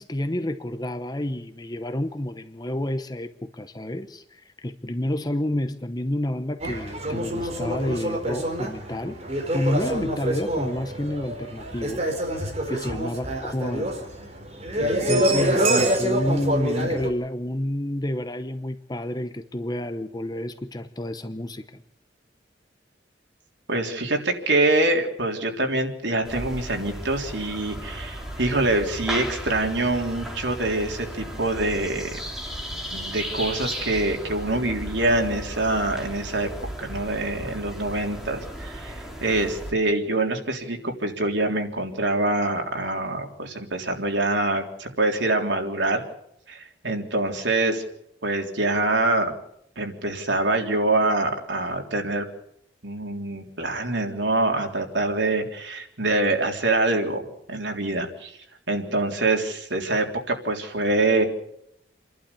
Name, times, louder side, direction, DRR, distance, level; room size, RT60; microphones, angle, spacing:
voice 1, 0.0-9.2 9.5-12.0 12.7-14.0 14.8-21.8, left 1 dB, 20° left, 9 dB, 0.9 m, -29 dB
sound 1, 6.6-17.1, right 1 dB, 35° right, 4.4 m, -26 dB
voice 2, 23.7-32.2 32.9-36.5 36.8-46.0 46.5-47.8 48.2-49.4 49.8-52.3 52.8-57.2 57.5-58.3 58.7-61.2, right 2 dB, 85° right, 3 dB, 3.6 m, -25 dB
sound 2, 26.2-39.7, equal, ahead, 3.5 m, -35 dB
29.5 x 12.0 x 8.4 m, 0.75 s
head